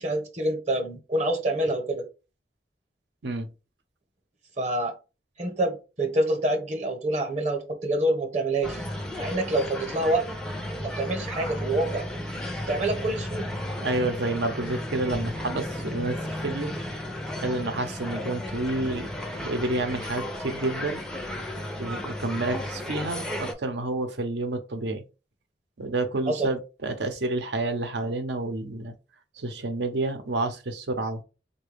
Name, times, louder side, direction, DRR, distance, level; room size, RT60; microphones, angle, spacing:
voice 1, 0.0-2.0 4.6-4.9 5.4-8.8 9.1-10.3 10.8-12.1 12.6-13.5 26.3-26.5, right 1 dB, 40° right, 0.8 m, -27 dB
sound 1, 8.6-23.5, left 1 dB, 5° left, 0.4 m, -34 dB
voice 2, 13.8-16.7 17.4-19.1 19.4-21.0 21.8-25.0 25.8-28.9 29.4-31.2, right 2 dB, 80° right, 0.7 m, -29 dB
3.9 x 2.2 x 3.3 m
head